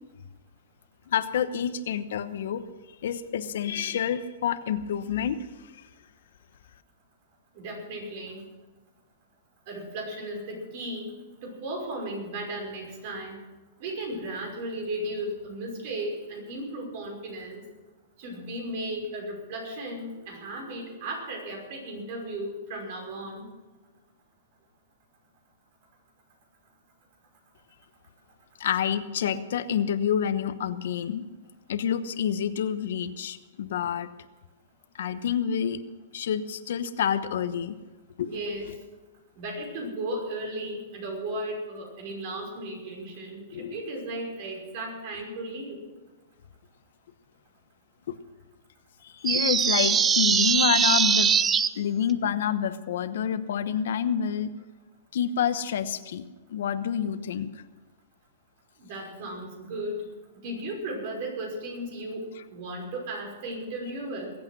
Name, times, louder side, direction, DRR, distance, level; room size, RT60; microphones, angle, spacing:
voice 1, 1.1-2.6 3.0-5.4 5.6-5.9 28.6-31.2 31.7-34.1 34.9-35.8 36.1-37.8 38.2-38.3 43.5-43.7 48.1-48.2 49.0-51.5 51.7-54.5 55.1-56.2 56.5-57.5, left 8 dB, 75° left, 11 dB, 1.0 m, -28 dB
voice 2, 7.5-8.4 9.7-11.1 11.4-13.4 13.8-17.6 18.2-23.5 38.3-38.7 39.4-45.8 58.8-60.0 60.4-64.3, right 1 dB, 50° right, 1 dB, 5.7 m, -35 dB
sound 1, 49.2-51.7, right 7 dB, 15° right, 0.5 m, -22 dB
21.5 x 8.7 x 6.2 m, 1.2 s
hypercardioid pair, 150°, 0 cm